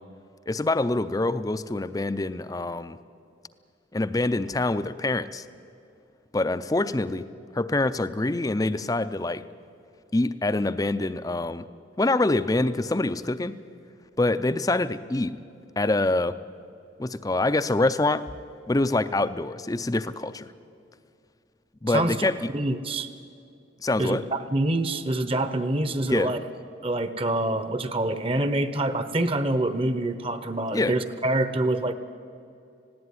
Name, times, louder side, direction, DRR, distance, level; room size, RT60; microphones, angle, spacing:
voice 1, 0.5-3.0 3.9-5.5 6.3-7.2 7.5-9.4 10.1-11.7 12.0-13.6 14.2-15.4 15.8-16.4 17.0-18.2 18.7-20.5 21.8-22.5 23.8-24.2 26.1-26.3 30.7-31.0, left 2 dB, 20° left, 13 dB, 0.5 m, -25 dB
voice 2, 22.5-23.1 24.0-26.4 26.8-31.9, right 1 dB, 30° right, 12 dB, 0.9 m, -26 dB
19.0 x 16.5 x 9.7 m, 2.5 s
head